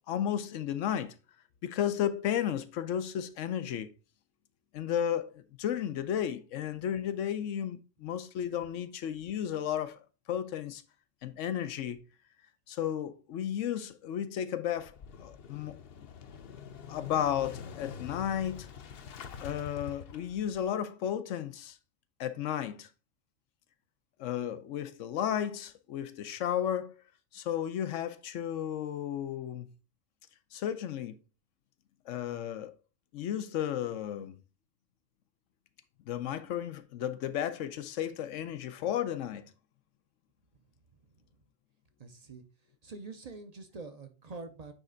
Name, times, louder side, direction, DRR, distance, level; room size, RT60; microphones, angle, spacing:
voice 1, 0.1-1.1 1.6-3.9 4.7-10.0 10.3-10.8 11.2-12.0 12.7-14.9 15.2-15.8 16.9-18.7 19.4-21.8 22.2-22.9 24.2-27.0 27.3-29.7 30.5-31.2 32.1-32.7 33.1-34.3 36.1-39.4, left 10 dB, 90° left, 1.0 m, -33 dB
Motorcycle / Engine starting, 14.8-20.6, left 7 dB, 60° left, 0.8 m, -46 dB
voice 2, 40.9-41.3 42.0-42.4 42.8-44.7, right 3 dB, 40° right, 0.7 m, -46 dB
9.0 x 3.3 x 3.8 m
omnidirectional pair, 1.2 m